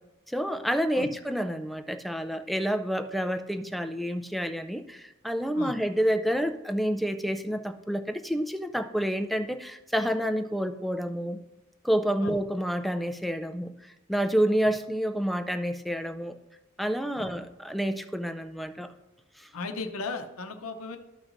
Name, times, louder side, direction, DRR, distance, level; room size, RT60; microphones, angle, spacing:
voice 1, 0.3-11.4 11.8-16.3 16.8-18.9 19.4-19.5, equal, ahead, 8 dB, 0.4 m, -29 dB
voice 2, 19.5-21.0, left 3 dB, 80° left, 6 dB, 0.7 m, -36 dB
13.0 x 6.0 x 2.6 m, 0.96 s
head